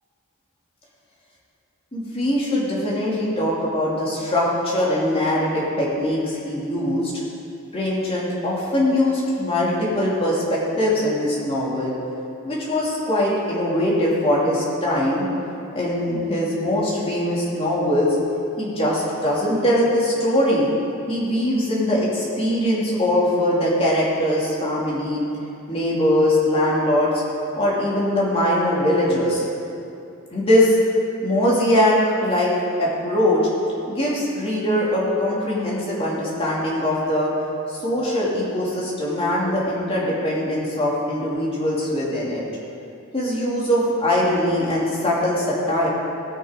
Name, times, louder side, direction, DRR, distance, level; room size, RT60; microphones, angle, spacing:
voice 1, 1.9-7.1 7.7-11.9 12.4-15.3 15.7-18.2 18.6-20.7 21.1-25.2 25.7-27.2 27.5-29.4 30.3-30.8 31.2-32.5 32.8-33.4 33.9-37.3 37.7-42.4 43.1-45.9, left 1 dB, 25° left, -6 dB, 2.8 m, -21 dB
17.5 x 6.5 x 5.2 m, 2.6 s
head